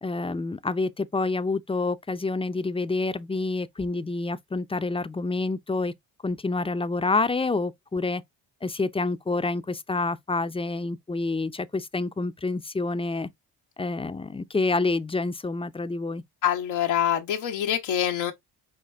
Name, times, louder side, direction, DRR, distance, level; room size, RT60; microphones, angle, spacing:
voice 1, 0.0-5.9 6.2-8.2 8.6-13.3 13.8-16.2, left 3 dB, 15° left, 0.4 m, -28 dB
voice 2, 16.4-18.3, left 10 dB, 90° left, 1.0 m, -25 dB
5.9 x 2.3 x 3.4 m
supercardioid pair, 65°, 46 cm